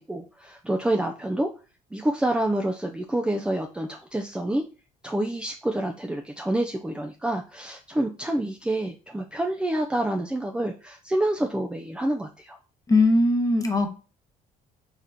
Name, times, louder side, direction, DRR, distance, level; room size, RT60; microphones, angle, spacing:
voice 1, 0.1-1.5 1.9-4.6 5.0-12.6, right 1 dB, 5° right, 2 dB, 0.4 m, -27 dB
voice 2, 12.9-13.9, left 2 dB, 20° left, 5 dB, 1.0 m, -20 dB
4.1 x 3.7 x 3.5 m, 0.34 s
cardioid pair, 110°, 17 cm